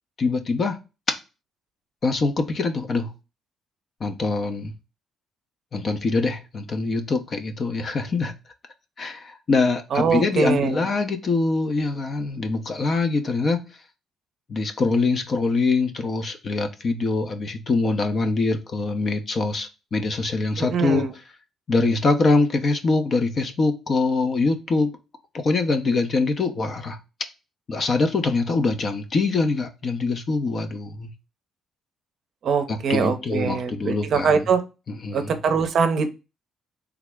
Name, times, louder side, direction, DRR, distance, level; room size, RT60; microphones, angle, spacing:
voice 1, 0.2-0.8 2.0-3.1 4.0-4.7 5.7-8.3 9.0-13.6 14.5-21.1 21.7-24.9 25.3-27.0 27.7-31.1 32.7-34.4 35.0-35.4, left 3 dB, 40° left, 0.6 m, -23 dB
voice 2, 9.9-10.8 20.6-21.1 32.4-34.6 35.1-36.1, right 5 dB, 55° right, 0.5 m, -23 dB
3.4 x 2.0 x 3.4 m
cardioid pair, 110°, 0 cm